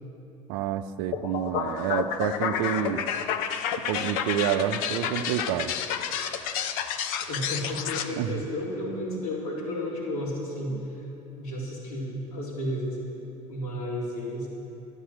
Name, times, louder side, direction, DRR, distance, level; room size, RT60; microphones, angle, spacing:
voice 1, 0.5-3.0 3.9-5.7 8.2-8.3 10.7-10.8, right 10 dB, 65° right, 10 dB, 0.7 m, -28 dB
sound 1, 1.1-8.1, left 8 dB, 65° left, 0.9 m, -30 dB
voice 2, 7.3-11.0 11.4-13.0 13.5-14.5, left 1 dB, 80° left, -6 dB, 4.0 m, -32 dB
13.0 x 9.1 x 7.8 m, 2.9 s
hypercardioid pair, 70°, 19 cm